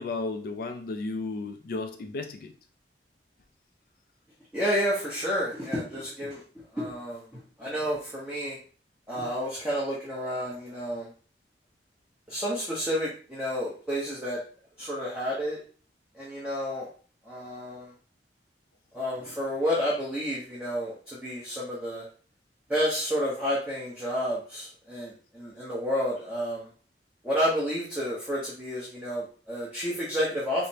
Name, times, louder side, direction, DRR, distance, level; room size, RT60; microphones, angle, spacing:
voice 1, 0.0-2.5, left 3 dB, 55° left, 6 dB, 0.3 m, -34 dB
voice 2, 4.5-6.4 6.7-7.2 7.6-8.6 9.1-11.1 12.3-14.4 14.8-15.6 16.1-16.9 17.3-17.9 18.9-22.0 22.7-26.7 27.2-30.7, equal, 5° right, -7 dB, 0.8 m, -30 dB
4.9 x 2.1 x 2.7 m, 0.40 s
head